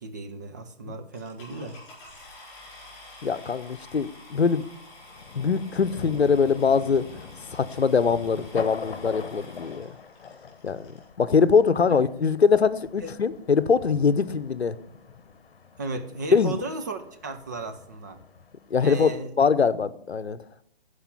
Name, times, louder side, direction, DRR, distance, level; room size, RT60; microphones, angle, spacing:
voice 1, 0.0-1.8 11.8-12.0 13.0-13.1 15.8-18.2 18.8-19.3, right 3 dB, 20° right, 5 dB, 0.4 m, -35 dB
sound 1, 1.1-11.1 11.9-12.0 12.5-12.6 12.8-13.1, left 1 dB, 20° left, 4.4 m, -49 dB
Thunder, 2.6-18.8, left 5 dB, 60° left, 1.0 m, -44 dB
voice 2, 3.2-4.7 5.4-7.0 7.5-10.0 10.6-10.9 11.2-14.8 16.3-16.5 18.7-20.4, left 5 dB, 85° left, 14 dB, 0.7 m, -22 dB
12.5 x 4.9 x 5.6 m, 0.70 s
figure-of-eight pair, 135°, 31 cm